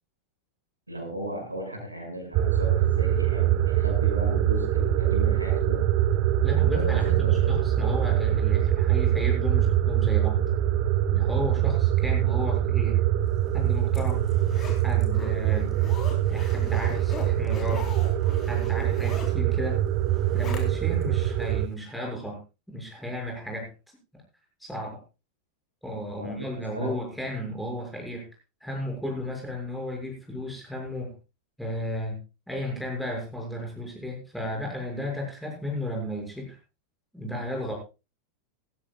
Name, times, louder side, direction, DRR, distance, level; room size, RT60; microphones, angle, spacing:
voice 1, 0.9-5.8 6.7-7.5 26.2-26.9, equal, 85° right, 2 dB, 6.4 m, -35 dB
sound 1, 2.3-21.7, right 12 dB, 40° right, 1.1 m, -24 dB
voice 2, 6.4-10.4 11.1-13.0 13.5-14.3 14.8-15.7 16.3-17.8 18.5-19.8 20.3-22.4 22.7-23.7 24.6-25.0 25.8-28.2 28.6-31.1 31.6-32.2 32.5-36.6 37.1-37.7, left 1 dB, ahead, -1 dB, 6.7 m, -34 dB
Zipper (clothing), 13.4-21.0 21.5-21.6, left 5 dB, 30° left, 4.1 m, -42 dB
19.0 x 15.5 x 2.5 m, 0.29 s
figure-of-eight pair, 90°, 0 cm